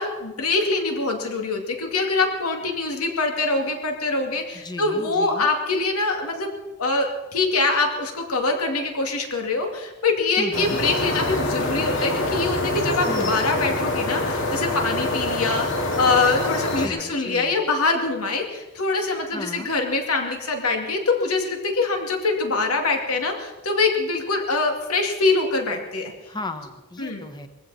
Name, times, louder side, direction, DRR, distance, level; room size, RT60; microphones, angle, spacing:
voice 1, 0.0-6.5 6.8-26.1 27.0-27.2, left 3 dB, 85° left, 3 dB, 2.4 m, -24 dB
voice 2, 4.5-5.5 10.4-10.8 13.1-13.5 16.8-17.5 19.3-19.7 26.3-27.5, left 2 dB, 20° left, 7 dB, 1.2 m, -35 dB
sound 1, 10.5-16.9, left 2 dB, 60° left, 2.3 m, -25 dB
22.0 x 15.5 x 4.2 m, 1.1 s
head